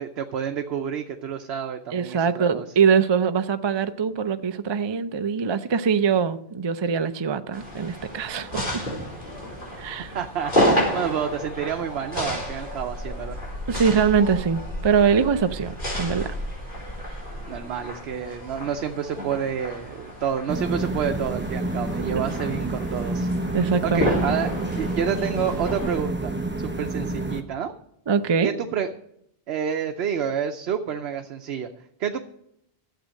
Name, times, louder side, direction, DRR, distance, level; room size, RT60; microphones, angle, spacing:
voice 1, 0.0-2.6 10.1-10.5 10.9-13.4 17.5-23.3 23.8-27.7 28.4-28.9 29.5-31.7 32.0-32.2, right 8 dB, 85° right, 0.9 m, -29 dB
voice 2, 1.9-8.8 9.8-10.1 13.7-16.3 23.5-24.4 28.1-28.5, right 6 dB, 40° right, 0.4 m, -23 dB
sound 1, 7.5-26.0, equal, 55° left, 3.9 m, -31 dB
sound 2, 20.5-27.4, right 2 dB, 10° right, 0.7 m, -28 dB
11.5 x 7.7 x 6.3 m
omnidirectional pair, 1.0 m